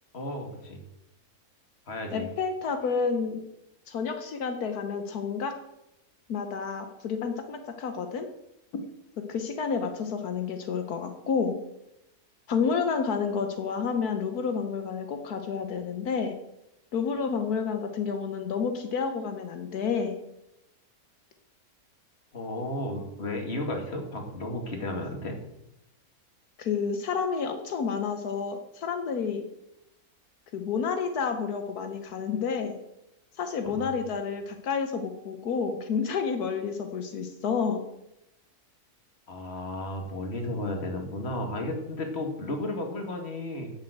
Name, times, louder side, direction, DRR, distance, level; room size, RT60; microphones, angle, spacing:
voice 1, 0.1-0.8 1.9-2.3 22.3-25.4 33.6-33.9 39.3-43.7, left 1 dB, 45° left, 3 dB, 2.3 m, -33 dB
voice 2, 2.1-3.4 3.9-5.5 6.3-8.3 8.7-8.8 9.3-11.6 12.5-16.3 16.9-20.2 26.6-29.4 30.5-32.8 33.4-37.8, left 5 dB, 80° left, 6 dB, 1.5 m, -30 dB
10.5 x 7.6 x 7.8 m, 0.87 s
omnidirectional pair, 1.6 m